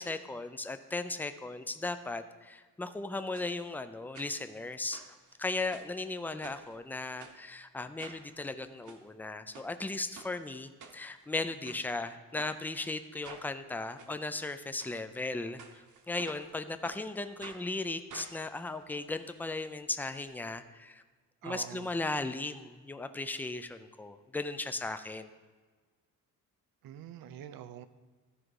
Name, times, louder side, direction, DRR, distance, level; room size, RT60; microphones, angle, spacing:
voice 1, 0.0-5.0 5.4-21.0 21.4-25.3, left 2 dB, 5° left, 10 dB, 0.3 m, -37 dB
sound 1, 3.3-3.5 4.1-4.6 4.9-6.0 6.4-6.7 7.2-7.4 8.0-8.2 8.7-9.0 9.5-9.7 10.1-10.3 10.8-11.3 11.6-11.8 12.4-12.5 13.2-13.5 14.0-14.1 14.7-14.9 15.6-16.5 16.8-17.0 17.4-17.6 18.1-19.6 19.9-20.0 20.2-20.3, right 5 dB, 60° right, 1.0 m, -50 dB
voice 2, 21.4-21.9 26.8-27.9, right 11 dB, 80° right, 13 dB, 0.6 m, -45 dB
13.5 x 4.9 x 4.7 m, 1.4 s
cardioid pair, 140°, 34 cm